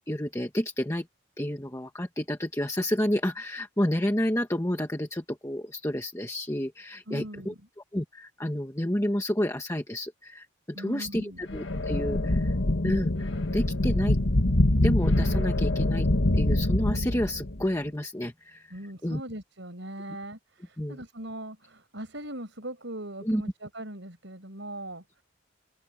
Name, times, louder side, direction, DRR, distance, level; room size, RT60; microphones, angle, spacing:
voice 1, 0.1-1.1 1.4-7.5 7.9-12.5 12.8-14.2 14.8-16.1 16.3-18.7 19.0-19.2 20.8-21.0 23.2-23.4, left 1 dB, 15° left, 1.4 m, -30 dB
voice 2, 7.1-7.7 10.7-11.4 18.7-25.2, right 1 dB, 65° right, 5.6 m, -40 dB
sound 1, 11.5-17.6, left 1 dB, 65° left, 1.6 m, -25 dB
head